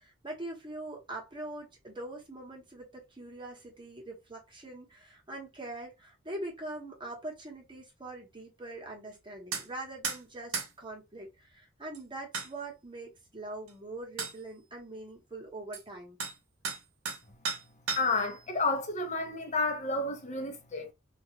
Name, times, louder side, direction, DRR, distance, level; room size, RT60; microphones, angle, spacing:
voice 1, 0.0-16.2, right 2 dB, 25° right, 0.9 m, -43 dB
sound 1, 9.5-9.7 10.0-10.2 10.5-10.7 11.9-12.0 12.3-12.5 13.7-13.8 14.2-14.4 15.7-15.8 16.2-16.4 16.6-17.2 17.5-18.3, right 5 dB, 85° right, 0.8 m, -34 dB
voice 2, 17.9-20.9, left 3 dB, 35° left, 0.7 m, -31 dB
2.4 x 2.2 x 2.8 m
head